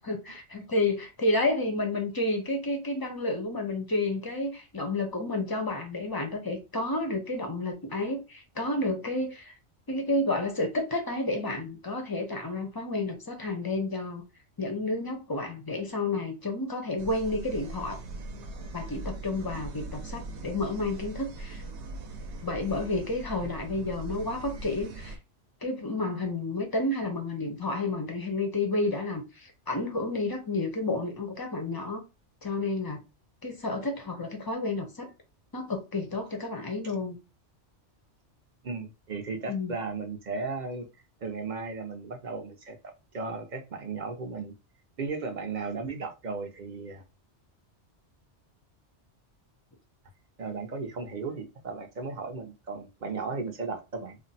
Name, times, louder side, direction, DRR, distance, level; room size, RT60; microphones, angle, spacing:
voice 1, 0.0-9.5 9.9-14.2 14.6-18.0 18.7-21.6 22.4-25.2 25.6-32.0 32.4-33.0 33.4-35.1 35.5-37.2 39.5-39.7, left 2 dB, 30° left, 0.4 m, -30 dB
sound 1, 17.0-25.2, right 2 dB, 75° right, 0.9 m, -40 dB
voice 2, 38.6-40.9 41.2-42.8 43.1-44.5 45.0-47.0 50.4-54.2, right 4 dB, 50° right, 0.6 m, -35 dB
2.5 x 2.0 x 3.9 m
omnidirectional pair, 1.2 m